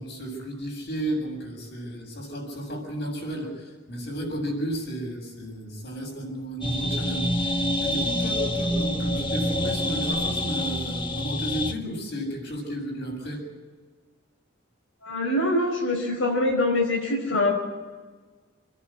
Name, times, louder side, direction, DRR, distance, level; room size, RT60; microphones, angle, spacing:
voice 1, 0.0-7.3 7.8-13.4, right 1 dB, 55° left, 2 dB, 7.3 m, -33 dB
sound 1, 6.6-11.7, left 1 dB, 25° left, 1.4 m, -27 dB
voice 2, 15.0-17.6, left 2 dB, 80° left, -2 dB, 5.1 m, -24 dB
28.0 x 10.5 x 8.9 m, 1.4 s
head